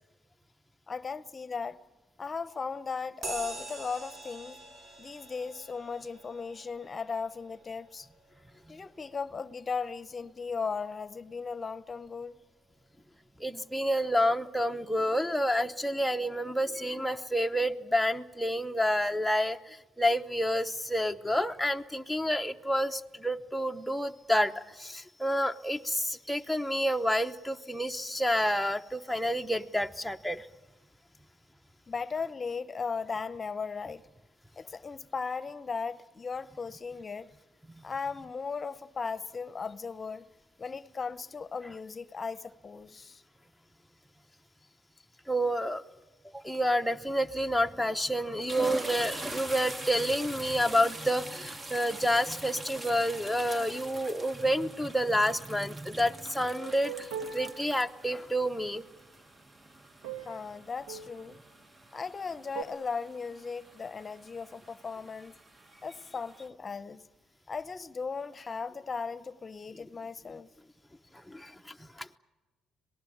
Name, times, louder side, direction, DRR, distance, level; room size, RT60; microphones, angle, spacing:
voice 1, 0.9-1.8 2.2-4.6 5.0-8.1 8.7-12.4 31.9-34.0 34.6-37.3 37.8-40.2 40.6-43.2 60.2-61.4 61.9-65.4 65.8-67.0 67.5-70.5, left 5 dB, 35° left, 0.9 m, -37 dB
sound 1, 3.2-11.1, right 2 dB, 55° right, 4.7 m, -47 dB
voice 2, 13.4-30.5 45.3-45.8 46.3-58.8 71.3-72.2, equal, ahead, 0.9 m, -29 dB
sound 2, 47.7-47.9 48.3-66.5, right 1 dB, 25° right, 1.4 m, -44 dB
sound 3, 56.6-57.6 60.0-60.4 60.8-61.3 62.5-62.6, right 7 dB, 90° right, 2.0 m, -39 dB
26.0 x 19.0 x 8.6 m
supercardioid pair, 75°, 0 cm